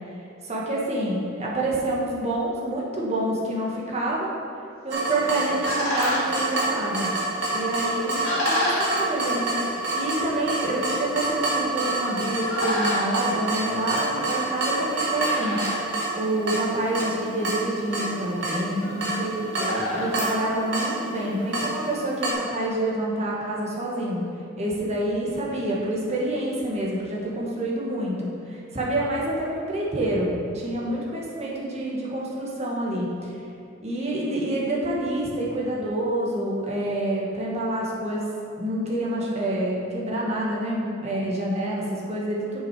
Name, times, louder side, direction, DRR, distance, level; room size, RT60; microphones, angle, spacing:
voice 1, 0.4-4.3 4.8-7.1 7.5-15.9 16.1-24.2 24.6-30.3 30.5-33.3 33.8-38.3 38.6-42.6, right 1 dB, 35° right, -4 dB, 1.6 m, -27 dB
Water tap faucet / Drip, 4.9-22.3, right 2 dB, 60° right, 1.7 m, -28 dB
sound 1, 5.1-21.2, left 1 dB, 85° left, 2.1 m, -33 dB
7.4 x 6.4 x 4.9 m, 2.5 s
head